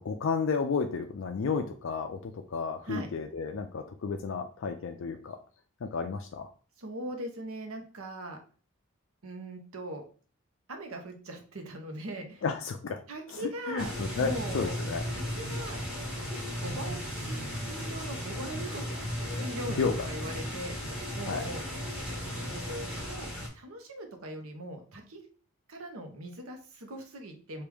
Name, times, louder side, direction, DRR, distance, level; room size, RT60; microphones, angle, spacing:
voice 1, 0.0-5.4 5.8-6.5 12.4-13.0 13.3-15.0 19.3-19.4 19.8-19.9 21.3-21.4, left 5 dB, 60° left, 5 dB, 0.4 m, -32 dB
voice 2, 6.8-8.4 9.2-10.0 10.7-12.4 13.1-14.8 15.1-15.8 16.6-17.4 17.6-18.8 19.3-21.7 22.0-25.2 25.7-27.6, right 1 dB, 75° right, 4 dB, 0.9 m, -40 dB
sound 1, 13.8-23.5, equal, 5° right, 1.1 m, -35 dB
4.6 x 2.6 x 3.4 m, 0.39 s
head